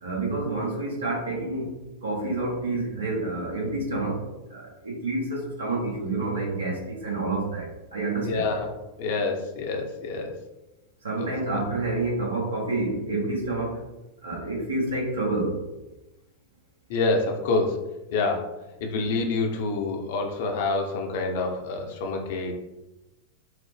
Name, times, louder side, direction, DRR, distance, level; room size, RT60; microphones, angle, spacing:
voice 1, 0.0-1.7 2.0-4.2 4.5-8.5 11.0-13.8 14.2-15.6, right 2 dB, 70° right, -2 dB, 1.1 m, -28 dB
voice 2, 8.2-8.7 9.0-10.3 11.2-11.6 16.9-17.8 18.1-22.6, left 3 dB, 50° left, 3 dB, 0.6 m, -27 dB
4.7 x 2.0 x 3.2 m, 1.0 s
figure-of-eight pair, 90°, 0 cm